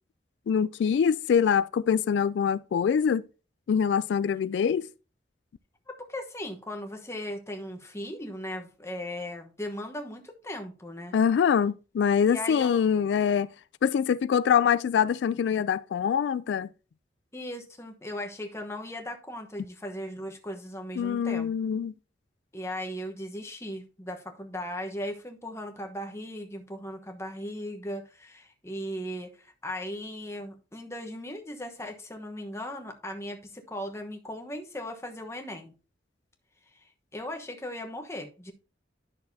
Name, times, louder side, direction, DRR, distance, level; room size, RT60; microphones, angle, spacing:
voice 1, 0.5-3.2 3.7-4.9 11.1-13.5 13.8-16.7 21.0-21.9, left 7 dB, 90° left, 0.3 m, -24 dB
voice 2, 6.0-11.1 12.3-12.8 17.3-21.5 22.5-35.7 36.7-36.8 37.1-38.5, left 1 dB, 15° left, 1.1 m, -37 dB
10.5 x 6.3 x 2.7 m
head